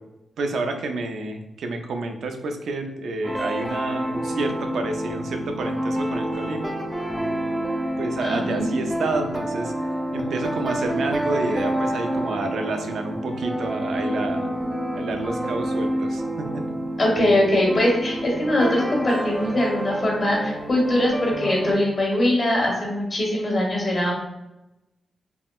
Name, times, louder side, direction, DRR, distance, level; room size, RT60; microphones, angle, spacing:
voice 1, 0.4-6.8 8.0-9.7 10.1-14.5 14.9-16.6, right 2 dB, 80° right, 5 dB, 0.3 m, -29 dB
sound 1, 3.2-21.7, right 1 dB, 5° right, 0.4 m, -28 dB
voice 2, 8.2-8.7 17.0-24.1, left 1 dB, 45° left, -2 dB, 1.0 m, -22 dB
3.6 x 2.0 x 2.3 m, 0.97 s
cardioid pair, 75°, 0 cm